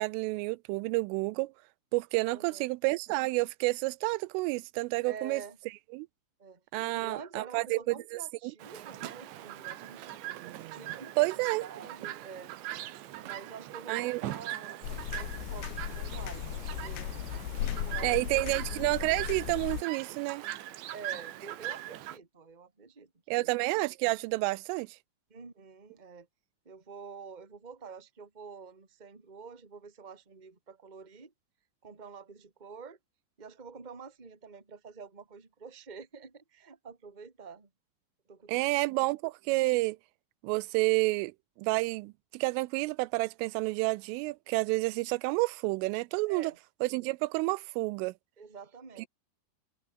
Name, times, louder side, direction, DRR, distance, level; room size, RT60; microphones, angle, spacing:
voice 1, 0.0-1.5 1.9-5.4 5.9-6.1 6.7-8.2 11.2-11.7 13.9-14.2 18.0-20.4 23.3-25.0 38.5-40.0 40.4-41.3 41.6-46.5 46.8-48.1, right 23 dB, 85° right, 3.1 m, -29 dB
voice 2, 2.3-2.7 5.0-5.6 6.4-10.2 10.7-11.3 11.6-12.5 13.2-17.1 17.6-18.6 20.9-23.5 25.3-26.3 26.6-31.3 31.8-33.0 33.4-37.7 38.3-38.7 46.2-46.6 48.4-49.1, right 5 dB, 15° right, 1.6 m, -47 dB
Chirp tweet, 8.6-22.2, right 14 dB, 70° right, 3.6 m, -41 dB
sound 1, 14.8-19.8, left 11 dB, 65° left, 3.6 m, -36 dB
omnidirectional pair, 5.7 m